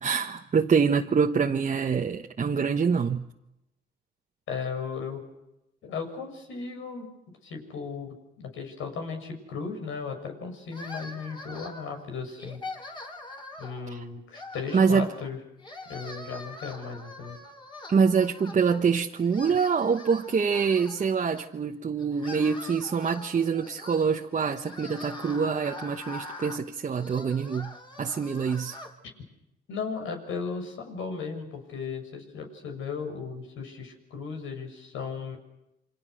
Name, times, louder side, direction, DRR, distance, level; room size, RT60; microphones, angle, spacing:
voice 1, 0.0-3.2 13.9-14.0 14.7-15.1 17.9-28.8, right 6 dB, 40° right, 3 dB, 1.3 m, -25 dB
voice 2, 4.5-5.2 5.8-7.1 7.4-12.6 13.6-15.4 15.9-17.4 29.7-35.4, left 5 dB, 80° left, 4 dB, 7.0 m, -36 dB
sound 1, 10.7-12.0 12.4-13.9 14.3-15.3 15.6-18.9 19.2-21.5 22.0-28.9, left 2 dB, 25° left, 4.3 m, -43 dB
29.5 x 25.5 x 6.5 m, 0.89 s
cardioid pair, 90°, 20 cm